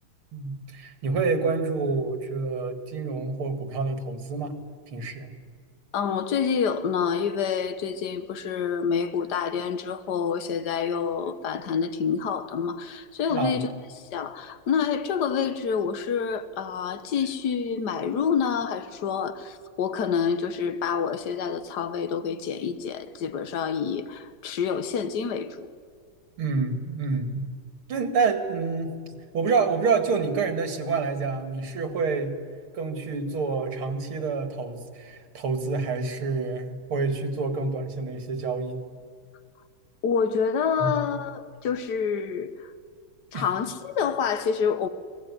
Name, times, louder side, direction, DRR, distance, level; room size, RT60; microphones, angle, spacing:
voice 1, 0.3-4.6 4.9-5.3 13.3-13.7 26.4-27.4 27.9-28.9 29.3-32.3 32.7-38.8 40.8-40.9 43.3-43.4, right 4 dB, 85° right, 3.0 m, -27 dB
voice 2, 5.9-13.7 14.0-25.7 40.0-42.7 43.3-44.9, left 6 dB, 55° left, 1.7 m, -27 dB
24.5 x 19.0 x 9.7 m
omnidirectional pair, 2.3 m